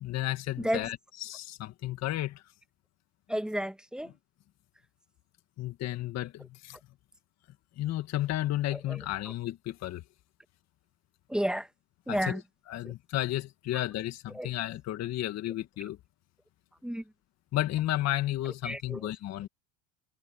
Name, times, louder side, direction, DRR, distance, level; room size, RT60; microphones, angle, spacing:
voice 1, 0.0-2.4 5.6-6.8 7.8-10.0 12.1-12.4 12.7-16.0 17.5-19.5, left 14 dB, 45° left, 1.9 m, -33 dB
voice 2, 3.3-4.1 8.7-9.0 11.3-11.7 12.1-12.4 12.8-12.9 13.7-13.8 14.3-14.5 16.8-17.0 18.6-19.0, equal, ahead, 1.5 m, -31 dB
supercardioid pair, 95°, 35 cm